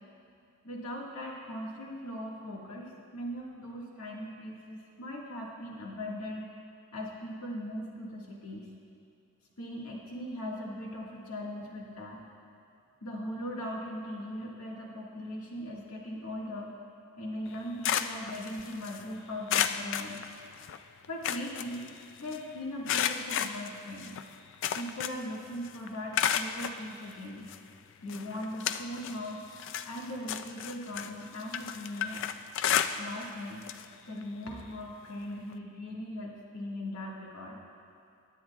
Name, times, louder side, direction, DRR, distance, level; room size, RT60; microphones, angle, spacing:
voice 1, 0.6-6.4 6.9-8.7 9.6-12.2 13.0-16.7 17.2-20.2 21.1-21.9 22.2-24.1 24.8-27.4 28.0-29.4 29.8-32.3 33.0-33.6 34.1-37.6, left 1 dB, 85° left, -3 dB, 1.7 m, -39 dB
sound 1, 17.5-19.0 19.5-20.8 21.0-22.4 22.9-25.4 25.6-26.8 27.5-27.6 28.1-29.2 29.5-33.3 33.6-33.8 34.2-34.3 35.5-35.6, left 9 dB, 60° left, 0.3 m, -32 dB
17.5 x 9.3 x 2.3 m, 2.6 s
head